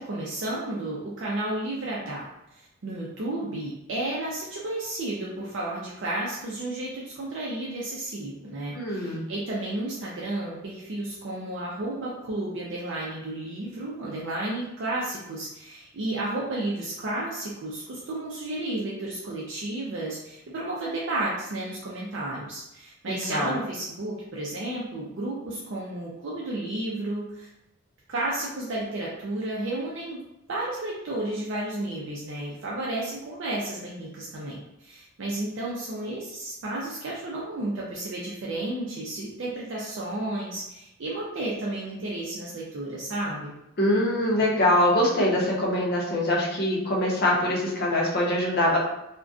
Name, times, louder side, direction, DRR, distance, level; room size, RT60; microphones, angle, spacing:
voice 1, 0.0-2.2 2.5-27.5 28.1-30.2 30.5-43.5, right 1 dB, 60° right, -5 dB, 0.4 m, -32 dB
voice 2, 8.7-9.2 23.1-23.5 43.8-48.8, left 1 dB, 50° left, -2 dB, 0.6 m, -23 dB
2.5 x 2.1 x 2.4 m, 0.87 s
head